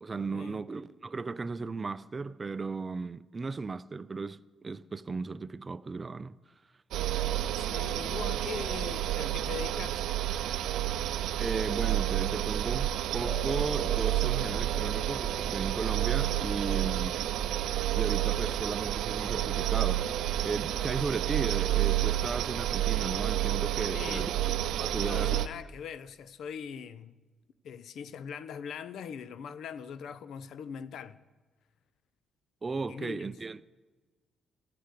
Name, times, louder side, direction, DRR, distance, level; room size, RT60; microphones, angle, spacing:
voice 1, 0.0-6.4 11.4-17.2 18.0-20.1 20.4-24.3 24.8-25.4 32.6-33.6, right 4 dB, 30° right, 0.4 m, -35 dB
sound 1, 6.9-25.5, right 13 dB, 85° right, 0.4 m, -30 dB
voice 2, 7.6-10.0 23.9-24.3 25.0-27.2 27.6-31.2 32.9-33.2, left 7 dB, 70° left, 0.6 m, -41 dB
sound 2, 13.2-21.5, left 5 dB, 90° left, 1.3 m, -49 dB
11.5 x 6.9 x 8.3 m
cardioid pair, 90°, 0 cm